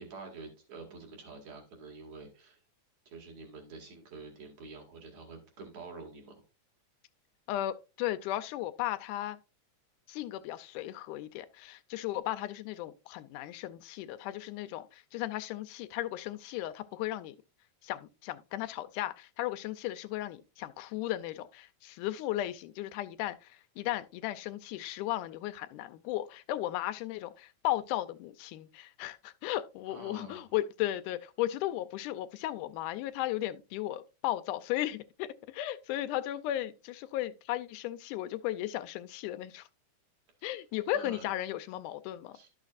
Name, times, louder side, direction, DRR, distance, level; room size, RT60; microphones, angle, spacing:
voice 1, 0.0-2.6 3.1-6.4 29.9-30.5 40.4-40.5 40.9-41.3 42.3-42.5, right 3 dB, 65° right, 3.1 m, -47 dB
voice 2, 7.5-9.4 10.1-17.4 17.8-39.7 40.4-42.4, left 14 dB, 85° left, 2.1 m, -35 dB
11.5 x 6.4 x 2.4 m
omnidirectional pair, 3.5 m